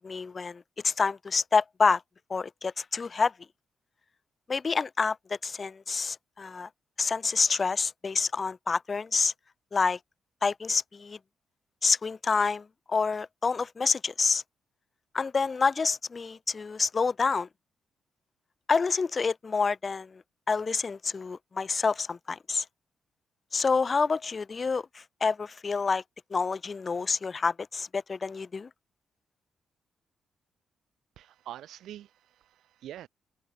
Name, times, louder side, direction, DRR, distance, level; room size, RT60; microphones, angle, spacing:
voice 1, 0.0-2.0 2.3-3.3 4.5-6.7 7.0-9.3 9.7-10.0 10.4-11.2 11.8-14.4 15.1-17.5 18.7-22.6 23.5-26.0 26.3-28.7, left 4 dB, 35° left, 0.9 m, -28 dB
voice 2, 31.2-33.1, right 12 dB, 90° right, 6.8 m, -45 dB
open air
cardioid pair, 115°, 0 cm